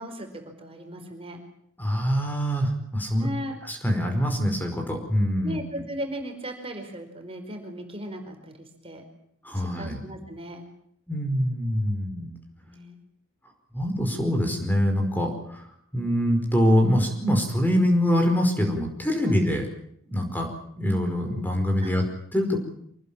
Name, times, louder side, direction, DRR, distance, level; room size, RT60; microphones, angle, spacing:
voice 1, 0.0-1.4 3.2-3.6 5.4-9.0 9.5-10.7 12.6-13.0 19.3-19.4 21.8-21.9, equal, 30° right, 4 dB, 4.6 m, -37 dB
voice 2, 1.8-3.3 3.7-5.6 9.4-10.0 11.1-12.3 13.7-15.6 15.9-19.6 20.1-20.5 20.8-22.0 22.3-22.6, equal, 10° left, 4 dB, 4.9 m, -24 dB
25.5 x 19.5 x 8.9 m, 0.69 s
head